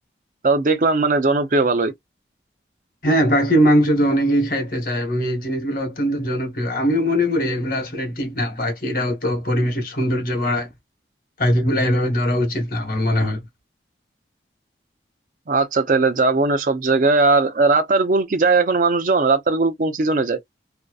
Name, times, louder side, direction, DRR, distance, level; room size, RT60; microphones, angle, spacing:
voice 1, 0.4-1.9 15.5-20.4, right 3 dB, 45° right, 0.5 m, -18 dB
voice 2, 3.0-10.7 11.4-13.4, equal, 50° left, 1.1 m, -21 dB
2.7 x 2.0 x 2.3 m
head